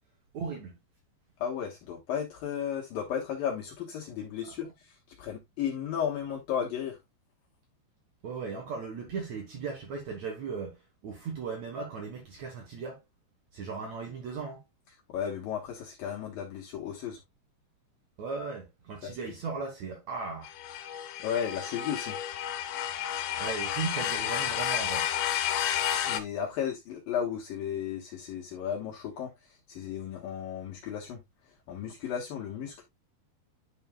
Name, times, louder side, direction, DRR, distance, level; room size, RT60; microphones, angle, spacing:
voice 1, 0.3-0.8 4.5-4.6 8.2-13.0 13.5-14.6 18.2-20.5 23.4-25.1, right 5 dB, 75° right, 1.6 m, -37 dB
voice 2, 1.4-4.7 5.2-7.0 15.1-17.2 19.3-19.4 21.2-22.2 26.1-29.3 29.7-31.2 31.7-32.8, left 8 dB, 65° left, 2.6 m, -34 dB
sound 1, 20.4-26.2, left 10 dB, 80° left, 3.1 m, -31 dB
10.5 x 5.5 x 2.3 m
omnidirectional pair, 5.3 m